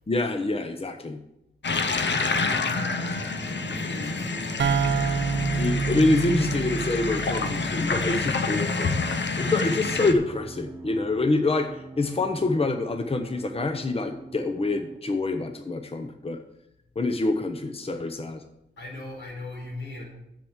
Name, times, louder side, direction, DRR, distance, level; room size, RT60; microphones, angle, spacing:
voice 1, 0.1-1.2 5.6-8.9 9.4-16.4 17.0-18.4, left 2 dB, 30° left, 6 dB, 0.8 m, -26 dB
sound 1, 1.6-10.1, left 4 dB, 70° left, 0.9 m, -28 dB
sound 2, 1.9-15.0, right 2 dB, 20° right, 1.1 m, -44 dB
voice 2, 2.1-5.5 18.8-20.0, left 2 dB, 90° left, -4 dB, 4.6 m, -40 dB
sound 3, 4.6-8.2, right 5 dB, 80° right, 0.8 m, -27 dB
7.5 x 7.3 x 7.2 m, 0.87 s
cardioid pair, 60°, 19 cm